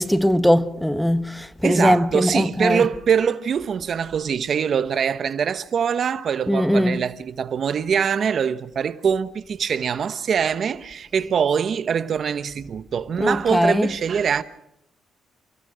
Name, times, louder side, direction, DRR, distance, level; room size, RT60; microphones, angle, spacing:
voice 1, 0.0-2.8 6.5-7.0 13.2-13.9, equal, 5° left, 1.2 m, -20 dB
voice 2, 1.6-14.4, right 7 dB, 55° right, 1.0 m, -23 dB
29.5 x 16.0 x 6.4 m
cardioid pair, 90°, 0 cm